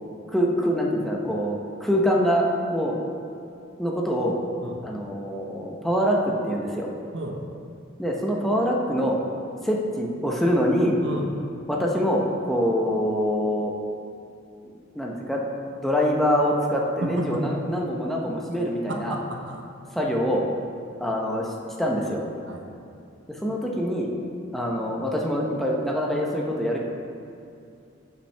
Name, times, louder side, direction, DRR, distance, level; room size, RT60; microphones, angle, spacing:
voice 1, 0.3-3.0 3.8-4.4 4.8-6.9 8.0-9.2 9.6-11.0 11.7-13.7 14.9-15.5 15.8-19.2 19.9-20.4 21.0-21.5 21.8-22.2 23.3-24.1 24.5-26.8, equal, ahead, -2 dB, 0.9 m, -24 dB
voice 2, 17.0-17.6 18.9-19.6 22.5-22.8, right 1 dB, 65° right, 2 dB, 1.1 m, -32 dB
15.5 x 5.8 x 3.4 m, 2.6 s
head